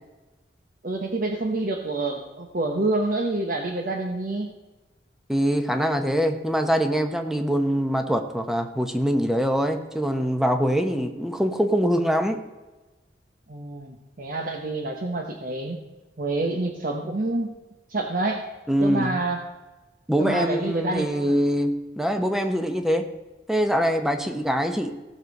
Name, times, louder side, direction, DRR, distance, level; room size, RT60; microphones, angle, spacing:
voice 1, 0.8-4.5 13.5-15.8 16.2-17.5 17.9-18.4 18.8-19.4 20.2-21.3 24.2-24.3, right 2 dB, 55° right, 2 dB, 1.1 m, -27 dB
voice 2, 5.3-12.4 18.7-19.2 20.1-23.0 23.5-24.9, equal, ahead, 6 dB, 0.9 m, -23 dB
16.5 x 6.4 x 5.3 m, 1.2 s
head